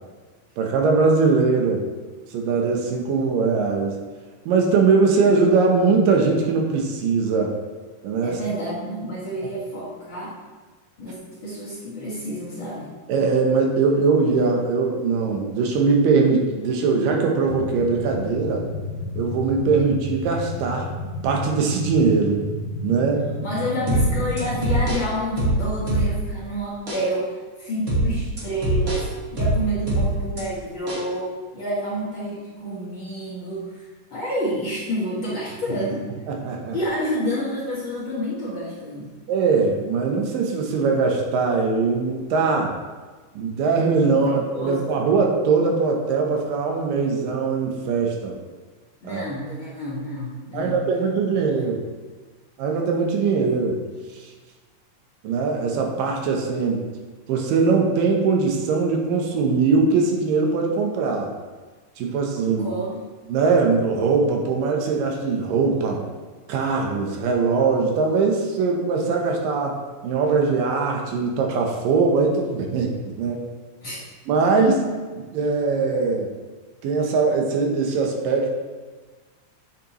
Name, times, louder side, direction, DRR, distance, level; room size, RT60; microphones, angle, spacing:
voice 1, 0.6-1.9 2.3-3.9 4.5-7.5 8.0-8.4 13.1-18.6 19.2-20.9 21.2-22.4 22.8-23.3 36.3-36.8 39.3-42.8 43.4-48.3 49.0-49.2 50.5-51.8 52.6-53.8 54.1-54.3 55.2-56.8 57.3-61.3 62.0-62.7 63.3-66.0 66.5-69.8 70.0-73.5 74.3-74.8 75.2-76.3 76.8-78.5, right 4 dB, 75° right, 1 dB, 2.5 m, -21 dB
voice 2, 8.2-10.4 11.0-11.2 11.4-12.9 23.4-27.3 27.6-36.0 36.7-39.1 44.0-44.8 49.0-50.8 51.3-51.6 62.4-63.0 73.8-74.0, equal, 45° left, -9 dB, 1.8 m, -29 dB
sound 1, 17.4-24.8, left 2 dB, 85° left, 2.5 m, -31 dB
sound 2, 23.9-26.4 26.9-27.1 27.9-30.4 30.9-31.1, right 1 dB, 40° right, 1.3 m, -23 dB
8.6 x 6.4 x 3.0 m, 1.3 s
omnidirectional pair, 4.1 m